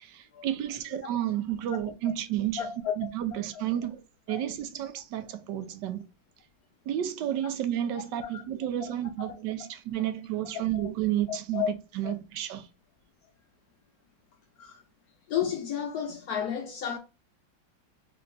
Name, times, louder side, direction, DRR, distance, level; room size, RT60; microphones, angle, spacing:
voice 1, 0.0-2.7 3.0-4.0 4.3-6.1 6.9-12.7, right 11 dB, 75° right, 1.2 m, -31 dB
voice 2, 2.6-2.9 4.3-4.4 7.9-8.0 8.3-8.4 8.8-8.9 9.2-9.3 10.7-10.9 11.3-11.7 12.0-12.1 14.6-14.8 15.3-17.0, left 9 dB, 75° left, 0.8 m, -32 dB
3.4 x 2.9 x 3.9 m
omnidirectional pair, 2.1 m